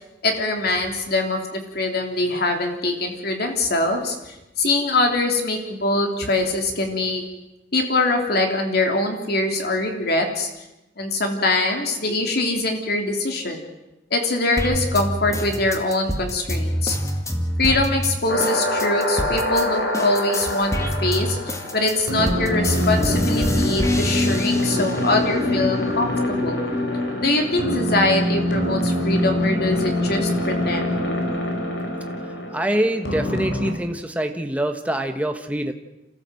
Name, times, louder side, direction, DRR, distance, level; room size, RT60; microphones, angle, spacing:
voice 1, 0.2-7.2 7.7-10.5 11.0-13.6 14.1-17.0 17.6-26.6 27.1-31.2, left 2 dB, 60° left, 3 dB, 3.5 m, -23 dB
sound 1, 14.6-19.6 19.9-25.1 25.6-26.6, equal, 20° left, 2.2 m, -27 dB
sound 2, 18.3-33.7, left 1 dB, 85° left, 4.5 m, -24 dB
voice 2, 32.5-35.7, right 1 dB, 10° right, 5 dB, 1.2 m, -25 dB
27.5 x 15.0 x 7.8 m, 0.95 s
head